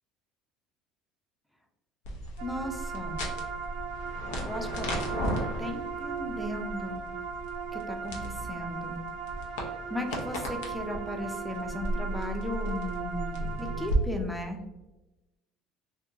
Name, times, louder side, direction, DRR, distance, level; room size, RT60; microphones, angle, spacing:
sound 1, 2.0-14.0, equal, 90° left, 0.7 m, -36 dB
voice 1, 2.4-3.2 4.4-7.0 7.7-9.0 9.6-14.6, left 1 dB, 5° left, 3 dB, 0.5 m, -36 dB
sound 2, 2.4-13.9, right 6 dB, 70° right, 0.4 m, -38 dB
2.9 x 2.7 x 2.4 m, 1.0 s
supercardioid pair, 105°, 0 cm